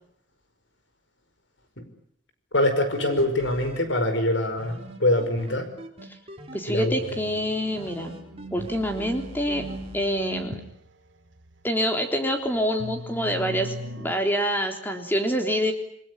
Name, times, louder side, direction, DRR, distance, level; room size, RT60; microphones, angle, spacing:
voice 1, 2.5-5.7 6.7-7.0, left 1 dB, 70° left, 9 dB, 5.3 m, -24 dB
sound 1, 2.9-3.8 4.6-6.6 7.0-10.0, right 1 dB, 30° right, 5.1 m, -41 dB
voice 2, 6.5-8.2 8.5-9.7 9.9-10.6 11.6-15.7, equal, 10° left, 5 dB, 3.5 m, -26 dB
sound 2, 7.1-10.6 12.8-14.1, right 1 dB, 70° right, 2.6 m, -38 dB
28.5 x 21.0 x 9.9 m, 0.71 s
head